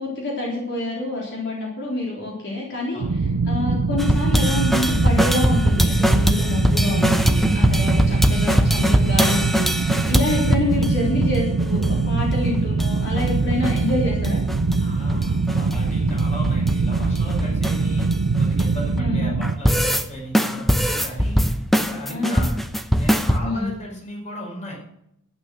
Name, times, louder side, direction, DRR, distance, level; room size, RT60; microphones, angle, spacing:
voice 1, 0.0-3.0 3.5-14.4 19.0-19.3 22.1-22.4 23.4-23.7, left 2 dB, 55° left, -3 dB, 3.7 m, -27 dB
sound 1, 3.0-19.5, right 4 dB, 90° right, 0.7 m, -22 dB
sound 2, 4.0-10.9 11.2-11.3 11.6-12.3 12.5-12.9 13.2-14.8 15.1-19.0 19.4-20.0 20.3-23.4, equal, ahead, 0.8 m, -21 dB
voice 2, 14.8-18.1 18.4-21.5 21.8-22.5 23.0-24.7, equal, 35° left, -1 dB, 5.0 m, -36 dB
12.0 x 9.8 x 6.4 m, 0.79 s
head